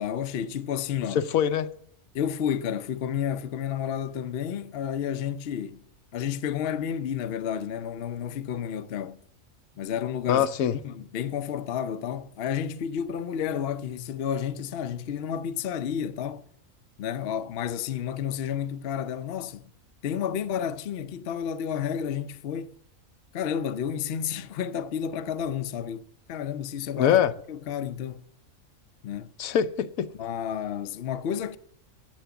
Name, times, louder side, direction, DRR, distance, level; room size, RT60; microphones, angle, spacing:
voice 1, 0.0-1.2 2.1-5.8 6.1-9.2 9.8-16.4 17.0-19.7 20.0-22.8 23.3-28.2 29.0-29.3 30.2-31.6, left 8 dB, 55° left, 0.7 m, -31 dB
voice 2, 1.1-1.7 10.3-10.8 26.9-27.3 29.4-30.1, left 9 dB, 80° left, 1.1 m, -23 dB
11.5 x 7.1 x 6.9 m
omnidirectional pair, 1.5 m